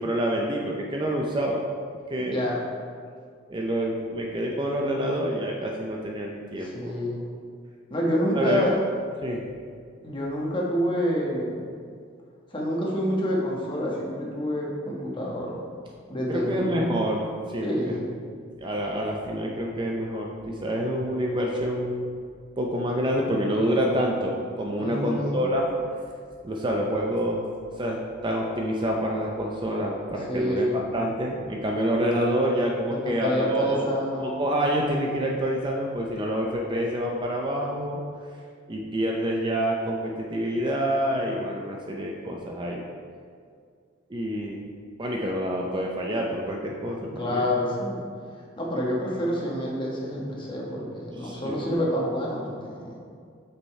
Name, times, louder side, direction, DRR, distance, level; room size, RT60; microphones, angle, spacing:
voice 1, 0.0-1.6 2.1-2.5 3.5-7.1 8.3-8.6 9.2-9.4 16.3-18.0 18.6-22.2 22.6-25.7 26.4-27.5 27.8-30.7 30.9-33.8 34.2-38.0 38.7-42.8 44.1-44.6 45.0-47.5 51.1-51.6, equal, 25° right, 0 dB, 0.5 m, -27 dB
voice 2, 2.2-2.6 6.6-7.3 7.9-8.8 10.0-11.6 12.5-15.5 16.1-16.8 17.6-18.1 24.8-25.4 30.3-30.8 32.9-34.4 47.2-48.0 48.6-52.9, equal, 25° left, -4 dB, 1.2 m, -28 dB
8.2 x 5.3 x 3.2 m, 2.1 s
head